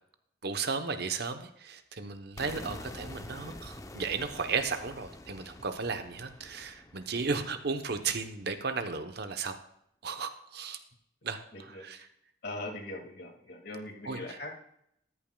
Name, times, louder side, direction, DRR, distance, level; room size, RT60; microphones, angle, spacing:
voice 1, 0.4-9.5 10.0-10.8 11.2-11.4 11.8-12.0 14.1-14.2, right 5 dB, 60° right, 8 dB, 0.9 m, -34 dB
sound 1, 2.4-8.2, left 1 dB, 20° left, 0.7 m, -47 dB
voice 2, 11.5-11.8 12.4-14.5, left 2 dB, 55° left, 2 dB, 2.1 m, -41 dB
13.5 x 10.5 x 2.3 m, 0.73 s
head